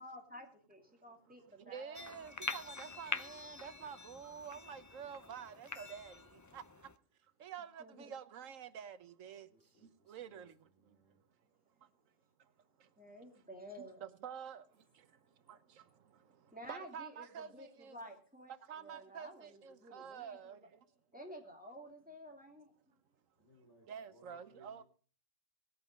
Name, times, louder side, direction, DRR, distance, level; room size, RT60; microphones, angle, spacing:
voice 1, 0.0-2.2 7.8-8.1 13.0-14.0 16.5-17.3 17.5-18.5 18.8-20.4 21.1-22.7, equal, 5° right, 2.4 m, -52 dB
voice 2, 1.7-6.1 6.5-6.6 7.4-9.5 10.1-10.5 13.8-14.6 15.5-15.6 16.7-18.0 18.7-20.6 23.9-24.8, right 7 dB, 85° right, 1.3 m, -48 dB
sound 1, 1.9-7.0, left 3 dB, 25° left, 0.3 m, -45 dB
voice 3, 9.5-10.5 10.7-11.2 23.4-24.8, left 1 dB, 60° left, 3.8 m, -67 dB
18.5 x 8.4 x 5.2 m
omnidirectional pair, 1.3 m